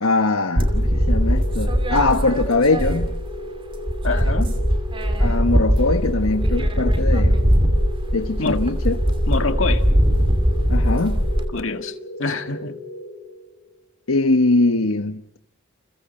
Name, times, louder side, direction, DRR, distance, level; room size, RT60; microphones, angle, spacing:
voice 1, 0.0-3.1 5.2-7.4 8.1-9.0 10.7-11.2 14.1-15.4, left 2 dB, 85° left, 1.3 m, -21 dB
sound 1, 0.6-13.7, left 1 dB, 10° left, 3.3 m, -36 dB
sound 2, 0.6-3.4 3.7-11.4, equal, 25° right, 2.6 m, -20 dB
voice 2, 4.0-4.5 8.4-8.7 9.3-9.9 11.5-12.8, left 3 dB, 70° left, 1.8 m, -26 dB
30.0 x 29.0 x 4.4 m
head